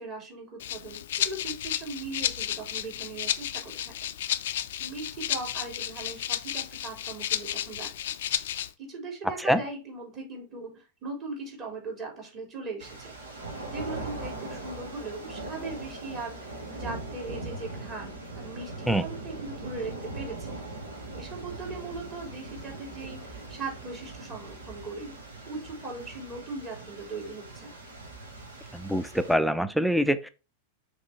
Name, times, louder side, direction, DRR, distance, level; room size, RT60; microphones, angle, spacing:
voice 1, 0.0-3.9 4.8-7.9 8.8-13.1 13.7-20.5 21.1-25.1 25.5-27.7, right 3 dB, 30° right, 0 dB, 3.7 m, -39 dB
Rattle (instrument), 0.6-8.7, left 11 dB, 55° left, 0.4 m, -32 dB
sound 1, 12.8-29.3, right 2 dB, 70° right, 1.8 m, -40 dB
voice 2, 28.7-30.3, equal, ahead, 12 dB, 0.6 m, -24 dB
6.3 x 3.7 x 5.7 m, 0.31 s
figure-of-eight pair, 90°, 0 cm